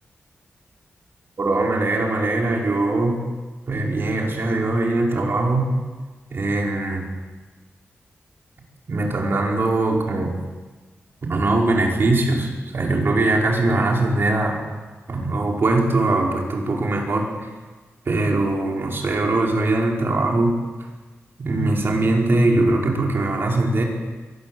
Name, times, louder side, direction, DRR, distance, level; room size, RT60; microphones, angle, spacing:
voice 1, 1.4-3.2 3.7-5.7 6.3-7.1 8.9-10.4 11.2-14.6 15.1-17.3 18.0-20.6 21.4-23.8, right 2 dB, 55° right, 0 dB, 4.9 m, -21 dB
23.5 x 18.0 x 7.9 m, 1.3 s
wide cardioid pair, 110°, 5 cm